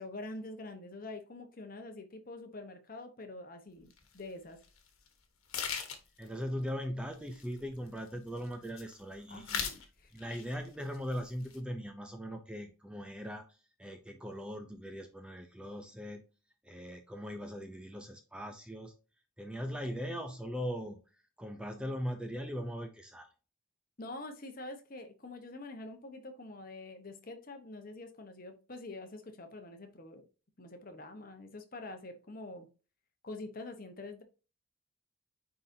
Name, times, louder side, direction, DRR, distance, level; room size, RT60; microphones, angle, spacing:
voice 1, 0.0-4.6 9.3-10.1 24.0-30.2 30.6-32.7 33.2-34.2, left 2 dB, 40° left, 6 dB, 1.0 m, -46 dB
sound 1, 3.9-4.0 4.6-4.8 5.1-5.2 5.5-6.3 7.1-8.1 8.4-9.0 9.3-9.8 10.2-10.7 10.9-11.6, left 6 dB, 80° left, 1.3 m, -38 dB
voice 2, 6.2-9.7 10.1-16.2 16.6-18.9 19.4-21.0 21.4-23.3, equal, 5° right, 5 dB, 0.5 m, -40 dB
9.6 x 3.9 x 2.7 m, 0.34 s
head